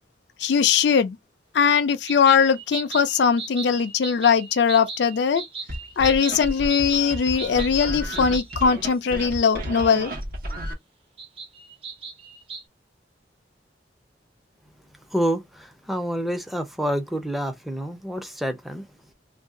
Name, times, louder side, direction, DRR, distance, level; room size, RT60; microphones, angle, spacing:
voice 1, 0.4-1.2 1.5-5.4 6.0-10.1, left 6 dB, 70° left, 0.4 m, -20 dB
sound 1, 2.1-8.7 11.2-12.6, right 4 dB, 30° right, 0.9 m, -37 dB
sound 2, 5.7-10.7, equal, 55° right, 1.1 m, -32 dB
voice 2, 15.1-18.8, equal, ahead, 0.5 m, -28 dB
2.6 x 2.3 x 3.6 m
head